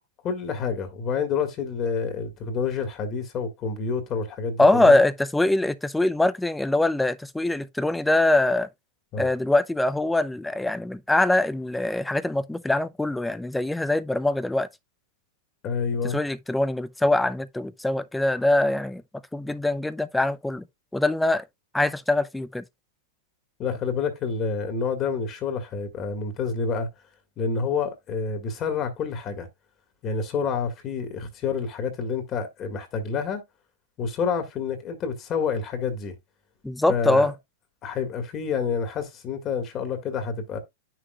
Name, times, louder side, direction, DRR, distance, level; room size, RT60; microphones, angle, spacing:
voice 1, 0.2-5.0 9.1-9.3 15.6-16.2 23.6-26.9 27.4-29.5 30.0-33.4 34.0-36.1 36.9-37.3 37.8-40.6, left 5 dB, 35° left, 1.8 m, -28 dB
voice 2, 4.6-8.7 9.2-14.7 16.0-19.0 19.3-20.6 20.9-21.4 21.7-22.6 36.6-37.3, left 2 dB, 5° left, 0.6 m, -23 dB
9.4 x 6.2 x 2.4 m
hypercardioid pair, 120°, 0 cm